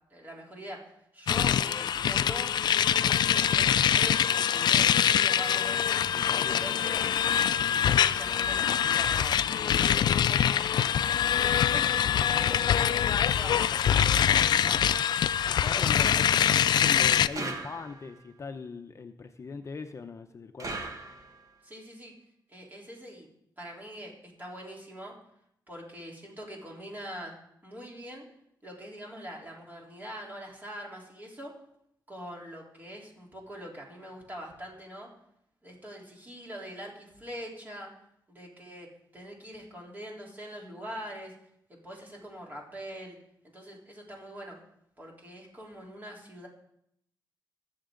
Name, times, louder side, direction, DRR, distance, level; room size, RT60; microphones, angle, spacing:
voice 1, 0.1-6.0 6.5-7.0 7.5-10.5 11.3-15.0 15.5-16.2 21.6-22.1 22.5-23.3 23.6-25.1 25.7-28.2 28.6-31.5 32.1-35.1 35.6-37.9 38.3-41.3 41.7-43.2 43.5-44.6 45.0-46.5, equal, 25° right, -2 dB, 3.7 m, -43 dB
sound 1, 1.3-17.3, left 9 dB, 75° left, 0.4 m, -24 dB
voice 2, 6.1-6.8 15.4-16.4 16.7-20.8, left 4 dB, 40° left, 6 dB, 0.7 m, -41 dB
sound 2, 17.3-18.2 20.6-21.5, right 3 dB, 50° right, 1.3 m, -38 dB
21.0 x 7.4 x 3.9 m, 0.75 s
cardioid pair, 95°, 7 cm